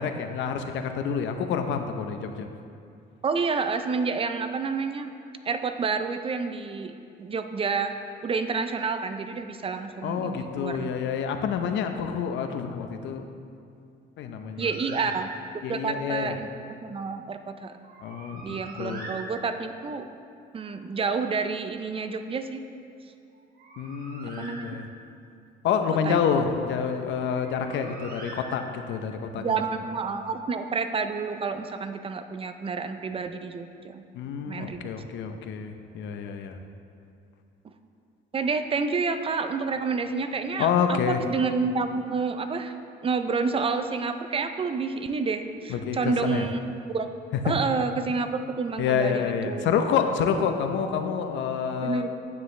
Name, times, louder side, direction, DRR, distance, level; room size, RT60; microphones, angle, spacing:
voice 1, 0.0-2.5 10.0-13.3 14.2-14.7 15.6-16.4 18.0-19.1 23.8-24.9 25.6-29.6 34.1-36.6 40.6-41.2 45.7-46.5 47.5-47.6 48.8-52.1, left 7 dB, 75° left, 6 dB, 0.7 m, -28 dB
voice 2, 3.2-5.1 5.5-8.0 8.2-10.9 14.6-15.3 15.7-16.5 16.8-17.9 18.4-20.1 20.5-22.6 24.4-24.8 26.1-26.2 29.4-34.0 34.5-34.9 38.3-42.8 43.0-46.6 46.9-47.1 47.4-49.7 51.8-52.1, right 4 dB, 30° right, 8 dB, 0.5 m, -29 dB
Bird, 14.6-15.8 17.8-19.9 23.3-25.2 27.2-29.1, right 2 dB, 50° right, 1.3 m, -42 dB
9.6 x 9.1 x 3.2 m, 2.5 s
cardioid pair, 120°, 19 cm